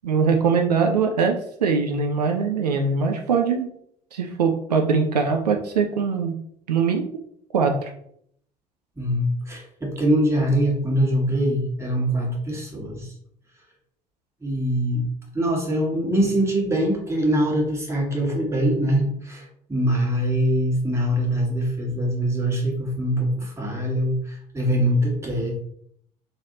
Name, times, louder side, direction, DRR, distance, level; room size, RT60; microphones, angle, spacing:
voice 1, 0.0-3.7 4.1-6.3 6.7-7.0 7.5-7.9, right 5 dB, 80° right, 3 dB, 0.4 m, -22 dB
voice 2, 9.0-13.1 14.4-15.0 15.3-25.5, equal, 15° right, -2 dB, 1.4 m, -23 dB
3.3 x 2.5 x 3.8 m, 0.68 s
figure-of-eight pair, 55°, 20 cm